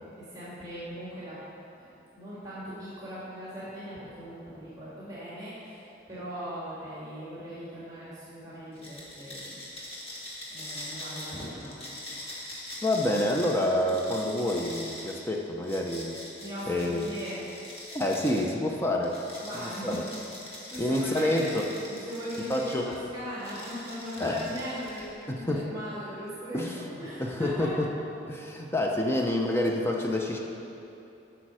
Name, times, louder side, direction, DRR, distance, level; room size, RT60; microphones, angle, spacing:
voice 1, 0.2-1.4 1.8-9.6 10.5-12.2 16.4-17.4 19.4-20.0 20.7-21.6 21.9-27.8, equal, 20° right, -10 dB, 2.0 m, -39 dB
sound 1, 8.7-18.5 19.0-23.0 23.4-25.2, left 1 dB, 30° left, 1.6 m, -43 dB
voice 2, 12.8-16.2 16.7-17.1 17.9-19.2 19.5-20.0 20.8-21.6 22.5-22.9 24.2-24.5 25.3-25.6 26.5-26.8 27.2-27.9 28.3-30.4, left 1 dB, 15° left, 0 dB, 0.6 m, -28 dB
8.5 x 5.7 x 6.2 m, 2.9 s
head